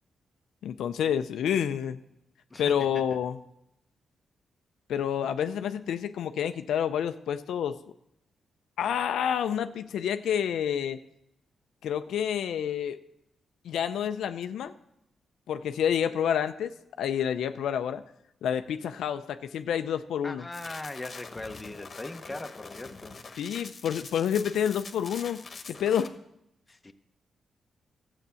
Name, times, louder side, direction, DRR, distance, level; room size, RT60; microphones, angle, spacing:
voice 1, 0.6-2.0 2.6-3.4 4.9-7.8 8.8-11.0 11.8-13.0 13.6-14.7 15.5-16.7 17.0-18.0 18.4-20.4 23.4-26.1, left 9 dB, 85° left, 0.5 m, -28 dB
voice 2, 2.5-3.1 20.2-23.2 26.7-26.9, left 2 dB, 20° left, 0.8 m, -40 dB
sound 1, 20.5-26.1, left 4 dB, 45° left, 1.2 m, -44 dB
12.0 x 8.0 x 6.9 m
cardioid pair, 80°, 0 cm